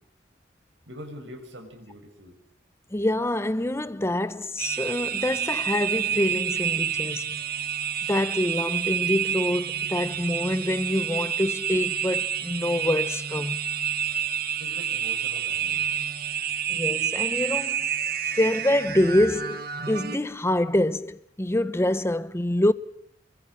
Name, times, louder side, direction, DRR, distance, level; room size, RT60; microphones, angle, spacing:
voice 1, 0.9-2.3 14.6-15.8, equal, 85° right, 6.3 m, -43 dB
voice 2, 2.9-7.4 8.1-13.6 16.7-22.7, left 1 dB, 15° left, 0.8 m, -26 dB
sound 1, 4.6-20.2, right 8 dB, 55° right, 1.6 m, -29 dB
28.5 x 23.0 x 5.7 m
head